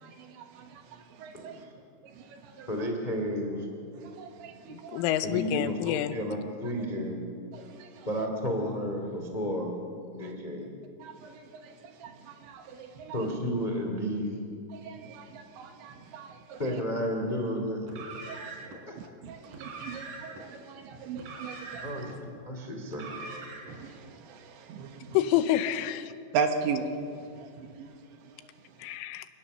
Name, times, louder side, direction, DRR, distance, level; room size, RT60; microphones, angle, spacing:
voice 1, 0.0-1.6 2.2-2.7 4.0-5.0 7.5-8.1 10.2-10.3 11.0-11.7 12.0-13.2 14.7-16.6 18.3-18.7 19.0-21.9 23.7-25.2 26.3-26.9 27.4-27.8, right 5 dB, 70° right, 5 dB, 3.3 m, -38 dB
voice 2, 1.3-1.7 2.7-3.7 5.2-7.2 8.0-9.7 10.1-10.7 13.1-14.4 16.6-17.9 18.5-18.6 18.9-19.0 21.8-23.1, equal, 30° left, 3 dB, 0.8 m, -32 dB
voice 3, 4.7-6.1 25.1-26.1 28.8-29.3, left 12 dB, 80° left, 11 dB, 3.1 m, -28 dB
Car, 17.8-18.8 19.5-20.4 21.1-22.2 22.9-23.8, right 3 dB, 45° right, 4.6 m, -42 dB
28.5 x 18.0 x 6.7 m, 2.4 s
omnidirectional pair, 5.9 m